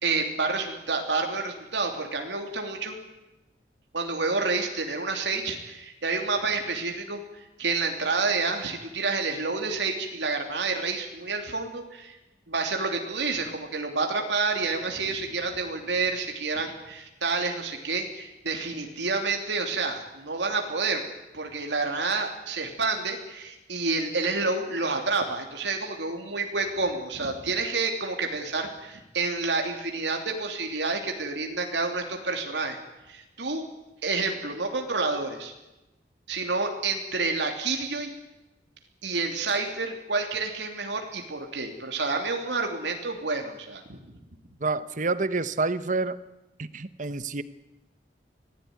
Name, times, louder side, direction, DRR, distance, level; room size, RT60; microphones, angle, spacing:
voice 1, 0.0-3.0 3.9-12.2 12.5-21.0 21.3-32.8 33.1-33.7 34.0-35.5 36.3-38.1 39.0-44.0, right 3 dB, 80° right, 3 dB, 3.1 m, -29 dB
voice 2, 44.6-46.2 46.6-47.4, right 3 dB, 45° right, 14 dB, 1.1 m, -28 dB
25.5 x 17.5 x 9.6 m, 0.99 s
head